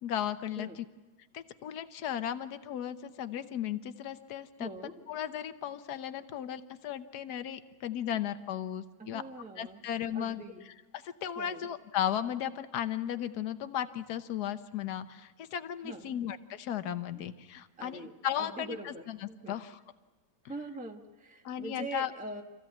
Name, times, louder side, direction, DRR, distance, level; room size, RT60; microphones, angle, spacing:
voice 1, 0.0-0.8 1.3-9.2 9.6-10.4 10.9-19.2 19.5-19.8 21.4-22.1, left 10 dB, 60° left, 11 dB, 1.4 m, -35 dB
voice 2, 4.6-5.0 9.0-9.8 10.1-10.7 11.4-11.7 15.8-16.2 17.1-17.2 17.8-19.6 20.5-22.4, right 2 dB, 5° right, 3 dB, 0.9 m, -43 dB
27.0 x 15.5 x 8.6 m, 1.2 s
omnidirectional pair, 2.1 m